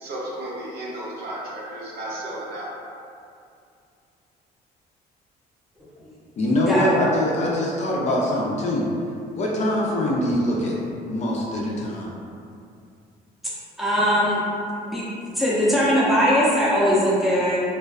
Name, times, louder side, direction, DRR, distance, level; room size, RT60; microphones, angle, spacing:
voice 1, 0.0-2.7, right 1 dB, 70° right, -6 dB, 0.7 m, -33 dB
voice 2, 6.4-8.9 9.3-10.8 11.1-12.1, left 1 dB, 40° left, -3 dB, 0.5 m, -23 dB
voice 3, 13.8-14.4 14.8-15.0 15.4-17.6, equal, ahead, -8 dB, 0.7 m, -20 dB
2.5 x 2.2 x 2.2 m, 2.5 s
cardioid pair, 110°, 17 cm